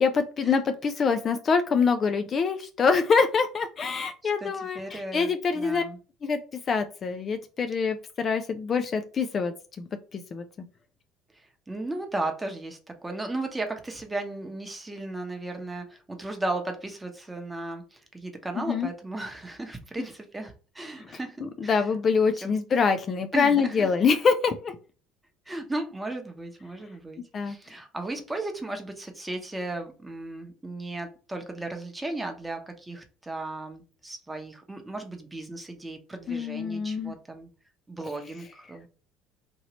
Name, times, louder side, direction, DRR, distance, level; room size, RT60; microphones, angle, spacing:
voice 1, 0.0-5.8 6.2-6.4 6.7-10.4 18.6-18.9 21.4-24.8 27.3-27.6 36.3-37.1, left 5 dB, 40° left, 8 dB, 0.3 m, -25 dB
voice 2, 4.4-6.0 11.3-21.4 21.6-21.9 22.4-22.5 23.3-23.9 25.5-37.5 37.9-38.9, right 2 dB, 15° right, 5 dB, 0.8 m, -35 dB
3.0 x 2.7 x 2.9 m, 0.37 s
hypercardioid pair, 70°, 0 cm